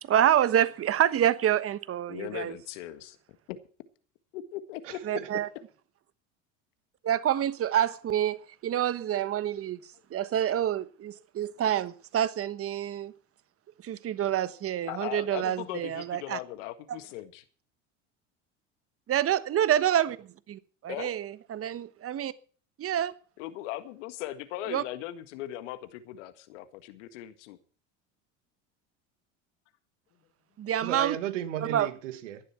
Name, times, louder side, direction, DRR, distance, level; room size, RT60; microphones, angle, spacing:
voice 1, 0.0-2.5 5.0-5.5 7.0-9.8 10.1-13.1 13.8-16.4 19.1-20.1 20.8-22.3 22.8-23.1 24.7-24.8 30.6-31.2 31.7-31.9, right 10 dB, 40° right, 1.2 m, -27 dB
voice 2, 2.1-3.2 3.5-3.6 4.3-5.2 14.9-17.4 20.9-21.1 23.4-27.6, left 13 dB, 75° left, 1.8 m, -39 dB
voice 3, 4.8-5.3 30.8-32.4, right 11 dB, 85° right, 2.0 m, -35 dB
17.0 x 11.5 x 4.4 m
hypercardioid pair, 85°, 36 cm